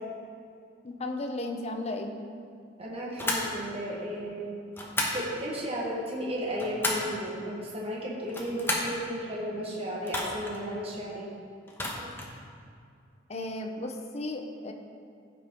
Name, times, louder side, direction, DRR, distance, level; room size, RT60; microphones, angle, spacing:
voice 1, 0.8-2.2 13.3-14.7, left 2 dB, 35° left, 4 dB, 0.8 m, -34 dB
voice 2, 2.8-4.6 5.1-11.3, equal, 30° right, -4 dB, 1.4 m, -34 dB
sound 1, 3.2-3.5 4.7-5.2 6.3-7.1 8.2-9.0 10.0-10.6 11.7-12.3, left 1 dB, 10° left, 1.2 m, -32 dB
15.0 x 5.9 x 3.8 m, 2.4 s
head